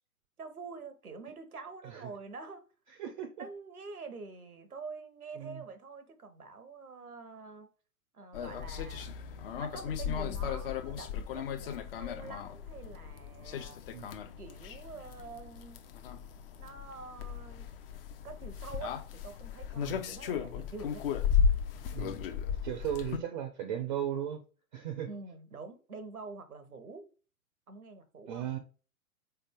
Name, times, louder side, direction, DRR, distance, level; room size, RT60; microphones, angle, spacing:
voice 1, 0.4-2.6 3.4-7.7 8.1-9.1 9.5-13.8 14.4-15.8 16.6-17.7 18.2-21.1 25.1-27.1 27.7-28.5, right 4 dB, 85° right, 0.9 m, -46 dB
voice 2, 3.0-3.5 5.4-5.6 13.9-14.2 19.8-20.0 21.9-22.2 22.6-24.4 24.7-25.1 28.3-28.6, right 10 dB, 35° right, 0.5 m, -36 dB
sound 1, 8.3-23.2, left 7 dB, 40° left, 0.6 m, -35 dB
3.8 x 3.4 x 3.5 m
figure-of-eight pair, 110°, 43 cm